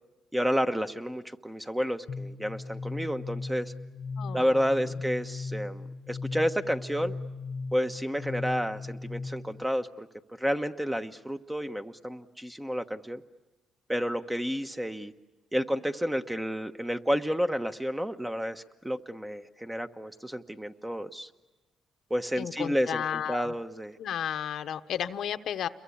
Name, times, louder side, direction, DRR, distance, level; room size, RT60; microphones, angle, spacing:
voice 1, 0.3-3.7 4.3-7.1 7.7-10.1 10.4-13.2 13.9-15.1 15.5-21.3 22.1-24.0, equal, 10° right, 8 dB, 1.2 m, -30 dB
sound 1, 2.1-9.6, left 3 dB, 45° left, 1.0 m, -38 dB
voice 2, 4.2-4.7 22.4-23.5 24.0-25.7, left 9 dB, 70° left, 9 dB, 1.0 m, -33 dB
29.0 x 22.5 x 8.6 m, 1.1 s
cardioid pair, 90°, 0 cm